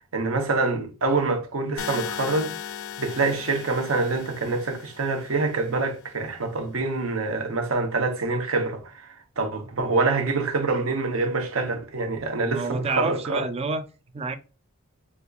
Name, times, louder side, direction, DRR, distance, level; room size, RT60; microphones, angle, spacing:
voice 1, 0.1-2.5 3.0-13.4, right 3 dB, 80° right, 0.8 m, -26 dB
sound 1, 1.8-5.8, left 9 dB, 75° left, 0.4 m, -37 dB
voice 2, 12.5-13.8 14.1-14.4, right 3 dB, 30° right, 0.4 m, -28 dB
4.3 x 2.5 x 2.3 m
head